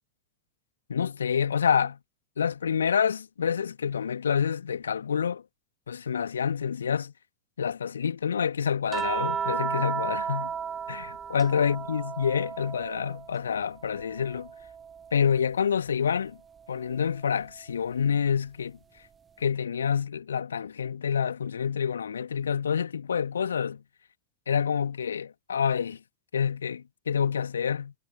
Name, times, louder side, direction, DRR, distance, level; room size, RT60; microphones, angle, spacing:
voice 1, 0.9-2.0 2.4-5.4 5.9-7.1 7.6-10.5 10.9-14.5 15.1-16.4 16.7-18.8 19.4-23.8 24.5-26.0 26.3-27.9, left 7 dB, 70° left, 2.0 m, -27 dB
sound 1, 8.9-13.4 13.8-15.4 16.9-17.1, right 7 dB, 20° right, 0.5 m, -34 dB
figure-of-eight pair, 90°, 0 cm